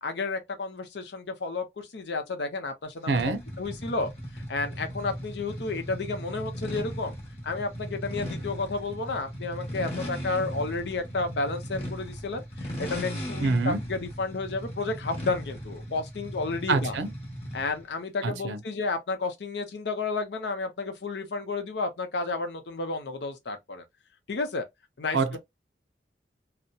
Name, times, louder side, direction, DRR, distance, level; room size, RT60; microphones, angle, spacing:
voice 1, 0.0-3.2 3.6-7.1 7.4-17.0 17.5-23.8 24.3-24.6 25.0-25.4, left 3 dB, 70° left, 0.6 m, -32 dB
voice 2, 3.1-3.4 13.4-13.8 16.7-17.1 18.2-18.6 25.1-25.4, right 3 dB, 80° right, 0.5 m, -25 dB
sound 1, 3.2-17.8, equal, 35° left, 1.0 m, -37 dB
2.7 x 2.0 x 2.2 m
head